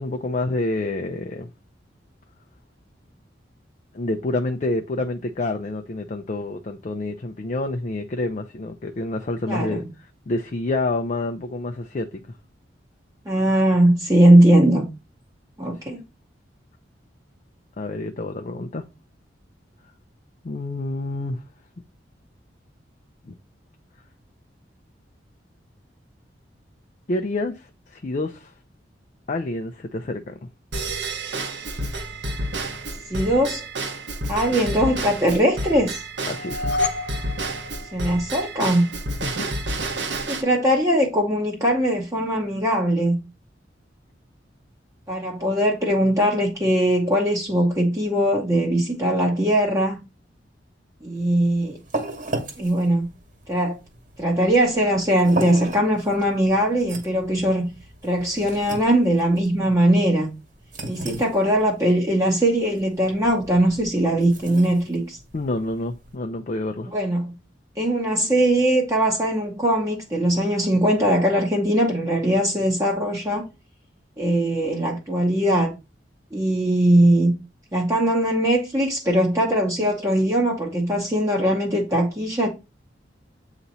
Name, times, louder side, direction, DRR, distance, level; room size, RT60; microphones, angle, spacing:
voice 1, 0.0-1.5 3.9-9.8 10.3-12.3 15.7-15.8 17.8-18.8 20.4-21.4 23.2-23.3 27.1-28.5 29.3-30.3 36.3-36.7 39.2-39.5 65.3-66.9, left 2 dB, 40° left, 0.5 m, -28 dB
voice 2, 9.5-9.8 13.3-14.9 15.6-16.0 33.1-33.6 34.3-36.0 37.9-38.9 40.3-43.2 45.1-50.0 51.0-51.8 52.6-53.1 53.5-53.8 54.2-57.7 58.0-60.3 60.8-65.2 66.9-67.3 67.8-73.4 74.2-75.7 76.3-77.3 77.7-82.5, right 1 dB, 15° right, 0.9 m, -20 dB
Drum kit / Drum / Bell, 30.7-40.4, right 2 dB, 75° right, 1.1 m, -30 dB
sound 1, 36.3-38.6, left 3 dB, 70° left, 1.0 m, -29 dB
sound 2, 51.2-66.2, right 2 dB, 45° right, 1.7 m, -36 dB
8.0 x 3.0 x 4.0 m
head